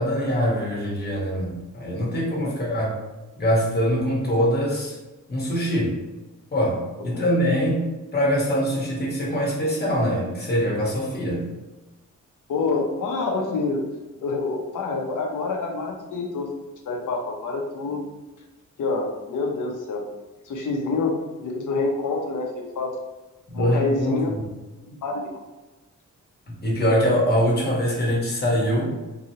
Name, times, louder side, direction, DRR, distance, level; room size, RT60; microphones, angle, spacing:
voice 1, 0.0-3.0 3.4-4.9 5.3-6.0 6.5-7.9 8.1-11.5 23.5-24.4 26.5-28.9, equal, 30° left, -4 dB, 1.2 m, -23 dB
voice 2, 12.5-13.8 14.2-16.5 16.9-18.0 18.8-20.0 20.5-22.9 23.5-24.3 24.9-25.3, left 3 dB, 75° left, 1 dB, 0.8 m, -27 dB
3.8 x 3.0 x 2.8 m, 1.1 s
wide cardioid pair, 135°, 31 cm